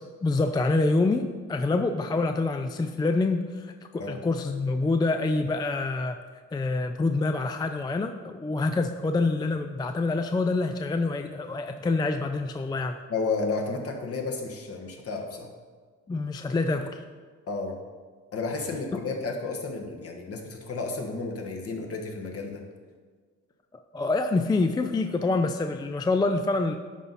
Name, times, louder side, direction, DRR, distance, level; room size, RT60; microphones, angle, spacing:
voice 1, 0.2-6.2 6.5-13.0 16.1-17.0 23.9-26.8, left 3 dB, 15° left, 7 dB, 0.3 m, -26 dB
voice 2, 13.1-15.5 17.5-17.8 18.3-22.6, left 3 dB, 50° left, 2 dB, 1.3 m, -32 dB
11.0 x 4.0 x 4.0 m, 1.5 s
cardioid pair, 90°, 30 cm